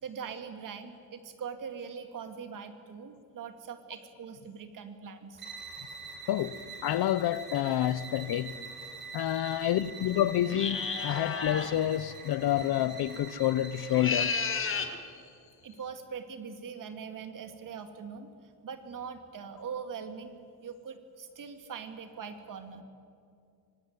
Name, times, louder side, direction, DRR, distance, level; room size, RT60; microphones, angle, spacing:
voice 1, 0.0-5.4 15.6-18.3 18.6-22.8, right 6 dB, 60° right, 2.3 m, -42 dB
sound 1, 5.4-14.7, right 4 dB, 30° right, 3.9 m, -45 dB
voice 2, 6.3-8.6 9.1-14.4, left 12 dB, 85° left, 0.9 m, -28 dB
sound 2, 10.5-11.8 13.8-15.0, left 5 dB, 35° left, 1.8 m, -32 dB
25.5 x 19.0 x 9.4 m
wide cardioid pair, 160°, 37 cm